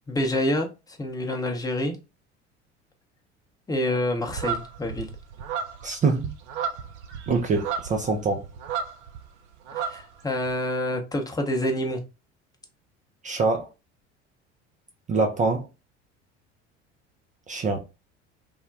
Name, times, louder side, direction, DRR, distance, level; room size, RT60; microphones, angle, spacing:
voice 1, 0.1-2.0 3.7-5.1 9.8-12.0, left 1 dB, 10° left, 0.7 m, -27 dB
sound 1, 4.3-9.3 9.5-10.5, right 7 dB, 70° right, 0.6 m, -33 dB
voice 2, 5.8-6.3 7.3-8.4 13.2-13.7 15.1-15.7 17.5-17.8, right 4 dB, 20° right, 0.4 m, -24 dB
3.4 x 2.2 x 2.4 m
figure-of-eight pair, 65°, 36 cm